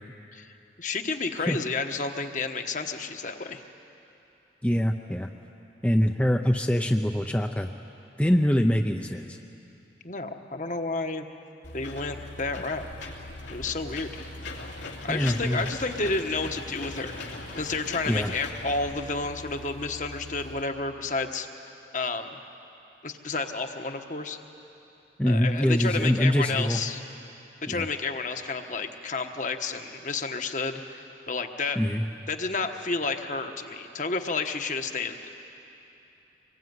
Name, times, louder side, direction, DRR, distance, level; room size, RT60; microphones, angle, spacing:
voice 1, 0.8-3.6 10.0-11.3 11.7-12.9 13.5-14.1 15.0-17.2 17.6-21.5 21.9-22.4 23.0-24.4 25.3-27.0 27.6-31.8 32.3-35.2, left 3 dB, 45° left, 5 dB, 1.2 m, -31 dB
voice 2, 4.6-5.3 5.8-7.7 8.2-9.4 15.1-15.7 18.1-18.3 25.2-26.8 27.7-27.9 31.8-32.0, equal, 10° left, 3 dB, 0.6 m, -24 dB
Engine / Mechanisms, 11.6-20.6, left 2 dB, 90° left, 2.9 m, -40 dB
24.5 x 22.0 x 9.5 m, 2.9 s
head